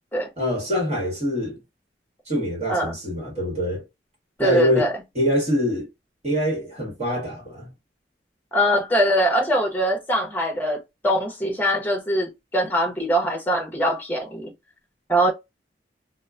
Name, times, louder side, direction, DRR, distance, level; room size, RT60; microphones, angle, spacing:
voice 1, 0.4-1.6 2.3-3.8 4.4-4.9 5.1-5.9 6.2-7.7, equal, 35° right, 1.3 m, -24 dB
voice 2, 4.4-4.9 8.5-14.5 15.1-15.3, equal, 10° left, 0.9 m, -22 dB
2.9 x 2.1 x 2.4 m
head